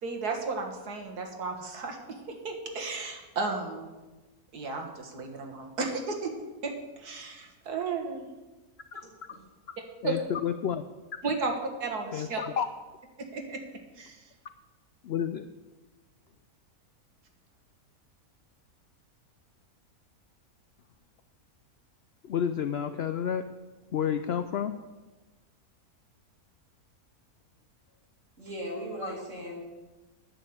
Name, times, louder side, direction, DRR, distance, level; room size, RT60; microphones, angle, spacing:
voice 1, 0.0-3.9 4.5-6.3 6.6-8.3 10.0-10.2 11.2-11.5 11.8-12.4 13.3-13.6 14.0-14.2, right 4 dB, 85° right, 2 dB, 2.1 m, -34 dB
voice 2, 10.0-10.8 12.1-12.7 15.0-15.5 22.2-23.4 23.9-24.8 29.0-29.1, left 8 dB, 75° left, 9 dB, 0.5 m, -30 dB
voice 3, 28.4-29.6, equal, 55° right, -3 dB, 3.5 m, -37 dB
10.0 x 6.4 x 8.5 m, 1.2 s
omnidirectional pair, 1.6 m